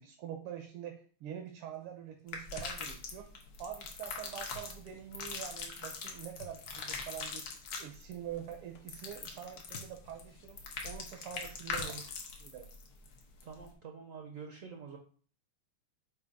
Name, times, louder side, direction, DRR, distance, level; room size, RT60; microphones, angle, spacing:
voice 1, 0.0-3.3 3.6-7.4 7.8-10.6 10.8-11.9 12.4-12.7, right 9 dB, 85° right, 5 dB, 1.7 m, -45 dB
sound 1, 1.7-3.6 4.0-5.4 5.7-7.4 8.3-8.9 9.3-11.0 11.3-11.9, left 4 dB, 60° left, 1.2 m, -54 dB
sound 2, 2.3-13.7, left 4 dB, 90° left, 2.1 m, -42 dB
voice 2, 11.8-12.1 13.4-15.0, right 6 dB, 65° right, 3 dB, 0.8 m, -47 dB
8.1 x 2.8 x 5.2 m, 0.43 s
omnidirectional pair, 2.4 m